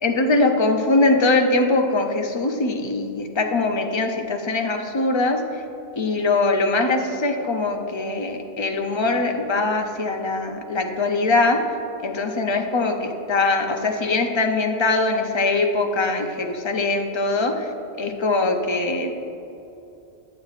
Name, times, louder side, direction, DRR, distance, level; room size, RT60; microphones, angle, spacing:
voice 1, 0.0-5.4 6.0-11.6 12.0-17.6 18.0-19.1, left 3 dB, 50° left, 3 dB, 0.3 m, -22 dB
9.3 x 7.6 x 2.4 m, 2.8 s
omnidirectional pair, 1.1 m